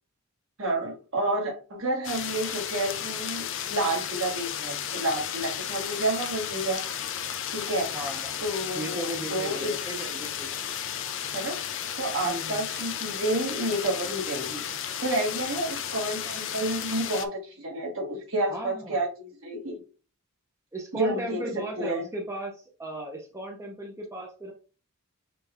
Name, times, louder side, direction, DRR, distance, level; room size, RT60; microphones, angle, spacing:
voice 1, 0.6-6.8 7.5-7.9 8.4-9.7 11.3-11.6 12.0-14.6 15.0-19.7 20.9-21.4 21.8-22.0, right 1 dB, 60° right, 0 dB, 1.4 m, -30 dB
sound 1, 2.0-17.3, left 9 dB, 60° left, 0.4 m, -33 dB
voice 2, 7.9-8.4 8.7-10.5 12.2-12.7 18.5-19.0 20.7-24.5, right 1 dB, 15° right, 0 dB, 0.6 m, -36 dB
5.7 x 2.2 x 3.5 m, 0.36 s
head